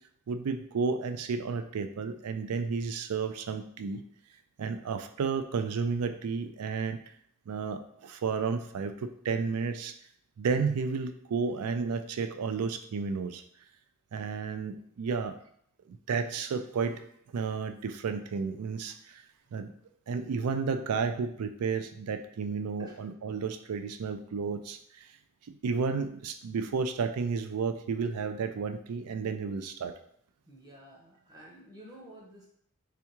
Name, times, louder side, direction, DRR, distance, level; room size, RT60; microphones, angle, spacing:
voice 1, 0.3-4.0 4.6-7.0 7.5-9.9 10.4-13.4 14.1-15.3 15.9-17.0 17.3-18.9 19.5-19.7 20.1-25.1 25.6-29.9, right 5 dB, 75° right, 8 dB, 0.4 m, -32 dB
voice 2, 30.5-32.5, right 1 dB, 15° right, -3 dB, 0.9 m, -51 dB
3.5 x 3.4 x 3.0 m, 0.68 s
head